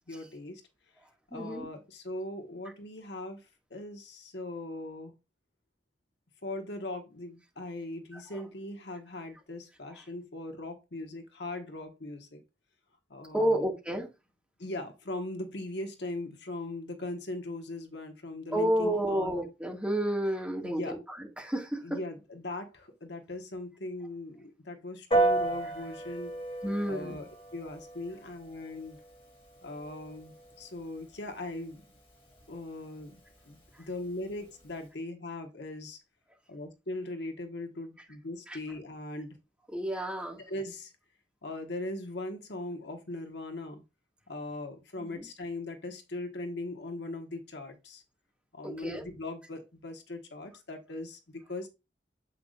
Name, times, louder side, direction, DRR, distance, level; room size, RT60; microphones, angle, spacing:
voice 1, 0.1-0.6 1.3-5.1 6.4-12.4 13.1-13.7 14.6-19.3 20.6-21.0 21.8-26.3 26.8-29.0 29.6-31.8 32.5-36.0 36.5-39.4 40.5-40.9 41.4-43.8 44.3-48.0 48.5-51.7, left 2 dB, 65° left, 1.4 m, -40 dB
voice 2, 1.3-1.7 8.1-8.4 13.3-14.1 18.5-22.0 26.6-27.2 38.5-38.6 39.7-40.4 45.0-45.3 48.6-49.0, right 1 dB, 5° right, 2.0 m, -31 dB
Piano, 25.1-34.9, right 2 dB, 30° left, 3.2 m, -35 dB
7.9 x 5.7 x 2.5 m
head